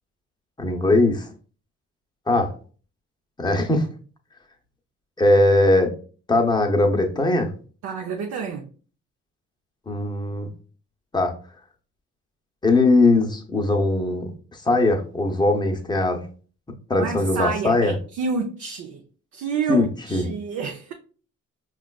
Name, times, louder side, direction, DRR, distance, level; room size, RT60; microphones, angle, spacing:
voice 1, 0.6-1.3 2.3-2.5 3.4-3.9 5.2-5.9 6.3-7.5 9.9-10.5 11.1-11.3 12.6-14.3 14.6-16.2 16.9-18.0 19.7-20.3, left 2 dB, 15° left, 0.7 m, -20 dB
voice 2, 7.8-8.7 16.9-19.0 19.3-20.9, right 5 dB, 70° right, 0.6 m, -29 dB
4.9 x 2.3 x 2.3 m
cardioid pair, 90°, 30 cm